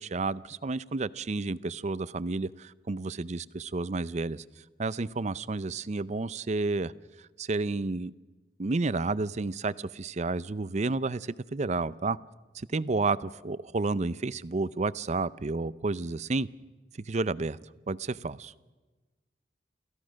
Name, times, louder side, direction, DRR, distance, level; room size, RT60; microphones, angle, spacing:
voice 1, 0.0-4.4 4.8-6.9 7.2-8.1 8.6-12.2 12.5-16.5 17.0-18.5, right 3 dB, 40° right, 17 dB, 0.5 m, -31 dB
29.0 x 15.0 x 6.4 m, 1.2 s
head